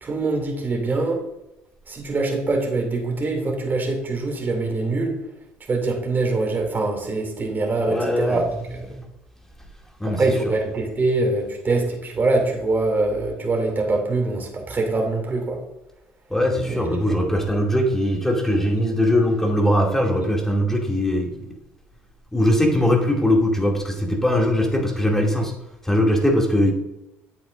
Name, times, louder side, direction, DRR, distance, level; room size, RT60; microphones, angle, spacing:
voice 1, 0.0-1.2 1.9-5.1 5.7-9.0 10.0-15.6 16.6-16.9, right 3 dB, 30° right, 1 dB, 2.5 m, -24 dB
voice 2, 7.8-8.4 10.0-10.2 16.3-21.5 22.3-25.5 25.8-26.7, left 1 dB, 5° left, 1 dB, 2.4 m, -20 dB
8.5 x 8.4 x 2.5 m, 0.90 s
hypercardioid pair, 70°, 6 cm